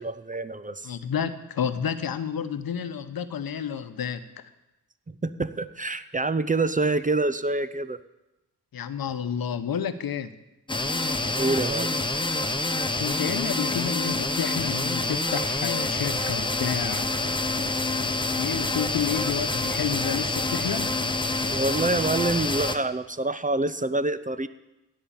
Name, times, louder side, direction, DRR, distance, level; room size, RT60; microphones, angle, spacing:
voice 1, 0.0-0.9 5.2-8.0 11.4-11.9 21.5-24.5, right 2 dB, 20° right, 14 dB, 0.6 m, -26 dB
voice 2, 0.8-4.5 8.7-10.4 13.0-17.1 18.4-21.0, left 8 dB, 70° left, 11 dB, 1.0 m, -30 dB
sound 1, 10.7-22.8, left 2 dB, 15° left, 1.1 m, -27 dB
16.0 x 5.5 x 8.8 m, 0.98 s
cardioid pair, 65°, 37 cm